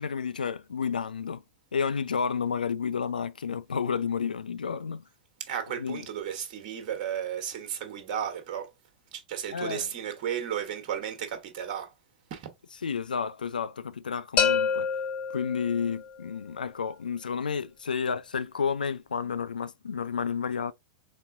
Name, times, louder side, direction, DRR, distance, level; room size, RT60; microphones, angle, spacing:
voice 1, 0.0-1.4 1.7-5.0 5.8-6.1 9.5-9.9 12.8-14.9 15.3-20.7, left 6 dB, 80° left, 0.3 m, -31 dB
voice 2, 5.4-8.7 9.1-11.9 12.3-12.5, right 9 dB, 45° right, 1.2 m, -34 dB
sound 1, 14.4-16.2, left 6 dB, 30° left, 1.0 m, -27 dB
4.2 x 3.4 x 2.6 m
figure-of-eight pair, 95°, 5 cm